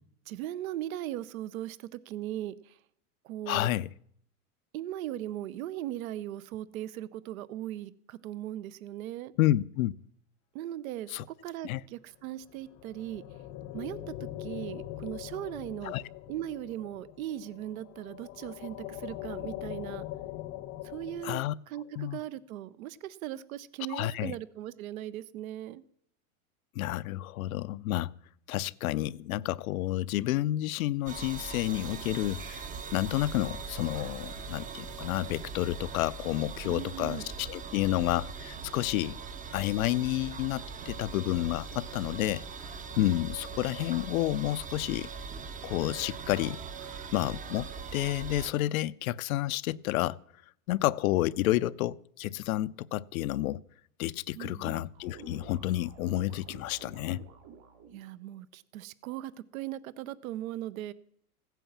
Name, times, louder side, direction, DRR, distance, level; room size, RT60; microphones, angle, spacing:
voice 1, 0.3-2.8 3.2-3.7 4.7-9.3 10.5-13.2 13.7-16.0 16.3-20.0 20.8-25.8 36.6-37.3 54.3-54.9 57.9-60.9, right 13 dB, 75° right, 0.8 m, -39 dB
voice 2, 3.5-3.9 9.4-9.9 11.1-11.2 11.6-11.8 15.8-16.0 21.2-21.5 22.0-22.2 23.9-24.3 26.8-28.1 28.5-39.2 39.5-42.4 43.0-45.1 45.6-46.6 47.1-50.2 50.7-53.6 54.0-57.2, left 15 dB, 75° left, 0.6 m, -30 dB
sound 1, 12.4-21.3, left 14 dB, 35° left, 0.7 m, -42 dB
sound 2, 31.1-48.5, right 5 dB, 20° right, 0.6 m, -41 dB
sound 3, 54.9-58.1, right 6 dB, 50° right, 3.2 m, -50 dB
15.5 x 9.1 x 7.3 m
supercardioid pair, 135°, 42 cm